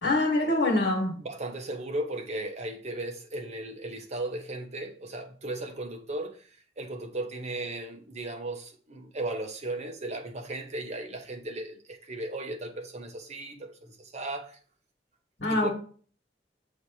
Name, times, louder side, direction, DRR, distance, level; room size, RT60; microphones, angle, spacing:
voice 1, 0.0-1.2 15.4-15.7, left 2 dB, 90° left, 1.4 m, -25 dB
voice 2, 1.2-6.5 6.8-14.6 15.5-15.7, right 2 dB, 40° right, 0.9 m, -36 dB
7.1 x 2.8 x 4.7 m
head